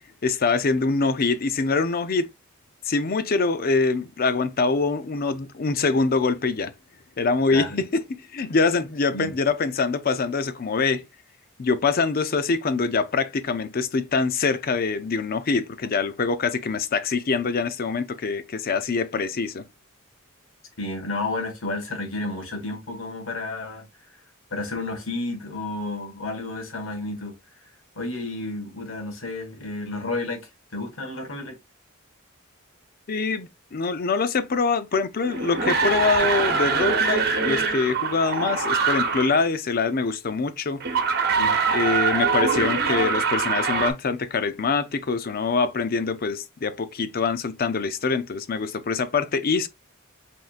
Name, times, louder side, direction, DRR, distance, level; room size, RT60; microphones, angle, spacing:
voice 1, 0.2-2.3 2.8-6.7 7.2-11.0 11.6-19.6 33.1-40.8 41.7-49.7, left 4 dB, 45° left, 0.5 m, -24 dB
voice 2, 20.8-23.9 24.5-27.3 28.0-31.6 41.4-41.5, left 2 dB, 70° left, 1.6 m, -31 dB
sound 1, 35.2-39.5 40.8-43.9, right 5 dB, 50° right, 1.1 m, -23 dB
5.3 x 3.6 x 2.4 m
head